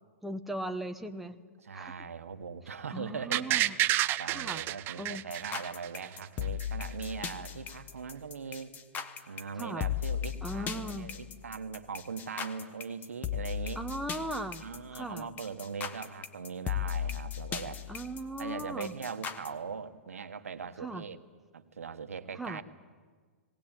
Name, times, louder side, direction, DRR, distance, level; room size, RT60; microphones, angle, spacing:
voice 1, 0.2-1.4 1.7-2.0 2.9-3.8 4.2-4.6 4.9-5.2 9.6-9.9 10.4-11.1 13.8-14.6 14.9-15.3 17.9-18.9 20.8-21.0 22.3-22.6, right 1 dB, ahead, 5 dB, 0.9 m, -38 dB
voice 2, 1.6-8.7 9.3-13.8 14.6-17.8 18.4-21.2 21.5-22.6, right 6 dB, 90° right, 8 dB, 1.4 m, -40 dB
sound 1, 3.3-6.2 6.6-6.7, right 14 dB, 30° right, 0.6 m, -29 dB
sound 2, 5.3-19.5, left 9 dB, 25° left, 1.3 m, -37 dB
19.5 x 18.0 x 9.0 m, 1.5 s
hypercardioid pair, 130°, 7 cm